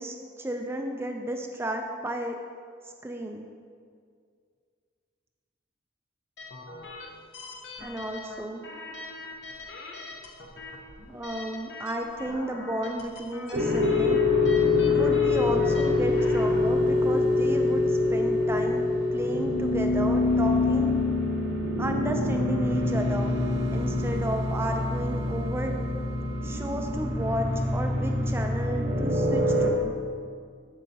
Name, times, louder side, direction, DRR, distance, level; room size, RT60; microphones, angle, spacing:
voice 1, 0.0-2.4 3.0-3.5 7.8-8.6 11.1-14.2 14.9-18.9 19.1-20.9 21.8-23.4 23.7-25.7 26.4-29.9, right 1 dB, 15° right, 3 dB, 0.3 m, -33 dB
sound 1, 6.4-16.7, left 2 dB, 65° left, 0.8 m, -42 dB
sound 2, 13.5-29.7, left 2 dB, 65° right, 0.9 m, -25 dB
7.6 x 7.4 x 2.8 m, 2.2 s
head